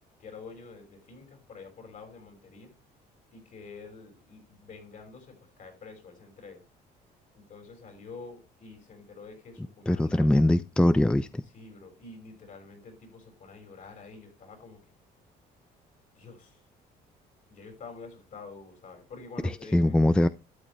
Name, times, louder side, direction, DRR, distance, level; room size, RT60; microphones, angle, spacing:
voice 1, 0.2-2.7 3.3-6.6 7.3-10.4 11.4-14.8 16.1-16.6 17.5-20.0, left 4 dB, 50° left, 5.9 m, -47 dB
voice 2, 9.9-11.4 19.7-20.3, left 1 dB, 5° left, 0.5 m, -22 dB
12.5 x 9.2 x 3.3 m
cardioid pair, 110°, 17 cm